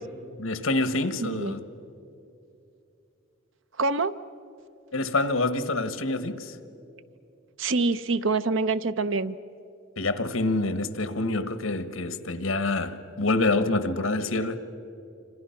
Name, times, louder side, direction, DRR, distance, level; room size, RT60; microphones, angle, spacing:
voice 1, 0.4-1.6 4.9-6.6 10.0-14.6, left 2 dB, 90° left, 1.5 m, -26 dB
voice 2, 1.2-1.5 3.8-4.1 7.6-9.4, right 3 dB, 65° right, 0.8 m, -25 dB
28.0 x 26.5 x 5.9 m
head